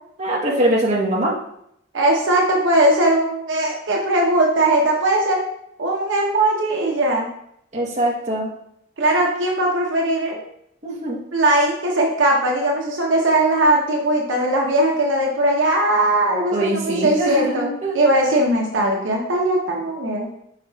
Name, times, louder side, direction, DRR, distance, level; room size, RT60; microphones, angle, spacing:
voice 1, 0.2-1.4 7.7-8.5 10.8-11.2 16.5-17.9, right 1 dB, 35° right, -4 dB, 1.0 m, -22 dB
voice 2, 1.9-5.4 5.8-7.3 9.0-10.4 11.3-17.7 17.9-20.4, right 1 dB, 75° right, -1 dB, 0.8 m, -19 dB
4.7 x 4.6 x 2.3 m, 0.73 s
head